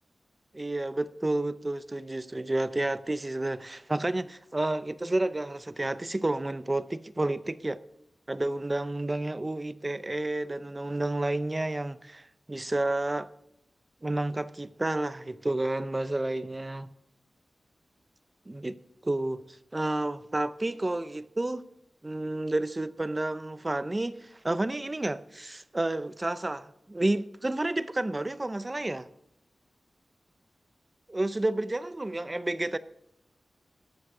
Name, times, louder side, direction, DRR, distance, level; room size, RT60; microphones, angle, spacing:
voice 1, 0.5-7.8 8.3-13.3 14.0-16.9 18.5-19.4 19.7-21.7 22.0-29.1 31.1-32.8, right 2 dB, 20° right, 0.5 m, -30 dB
13.0 x 8.4 x 4.8 m
wide cardioid pair, 135°, 0 cm